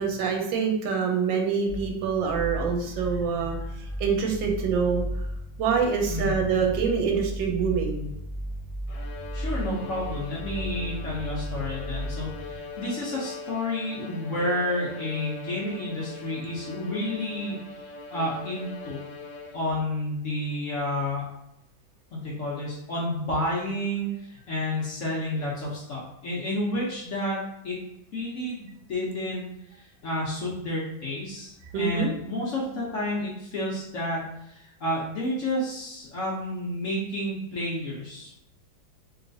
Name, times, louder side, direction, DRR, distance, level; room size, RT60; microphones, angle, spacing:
voice 1, 0.0-3.6 4.0-5.0 5.6-8.1 31.7-32.1, right 6 dB, 85° right, 3 dB, 1.3 m, -25 dB
sound 1, 1.7-12.6, equal, 20° right, 0.7 m, -35 dB
voice 2, 6.0-6.4 9.3-19.0 19.5-21.2 22.1-27.8 28.1-38.3, left 1 dB, 65° left, -4 dB, 0.7 m, -30 dB
Bowed string instrument, 8.9-19.9, left 4 dB, 85° left, 1.3 m, -41 dB
3.1 x 3.0 x 2.6 m, 0.82 s
omnidirectional pair, 2.0 m